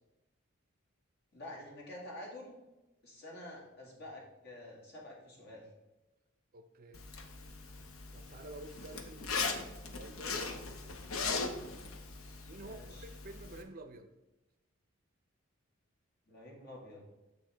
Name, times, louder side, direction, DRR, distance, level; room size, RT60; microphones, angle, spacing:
voice 1, 1.3-2.6 3.0-5.7 12.6-13.1 16.3-17.0, left 1 dB, 50° left, -2 dB, 2.0 m, -48 dB
voice 2, 6.5-7.1 8.1-10.5 11.4-11.7 12.5-14.1, right 2 dB, 45° right, 8 dB, 0.5 m, -50 dB
Zipper (clothing), 6.9-13.6, left 4 dB, 85° left, 0.8 m, -40 dB
6.7 x 6.6 x 3.3 m, 1.0 s
head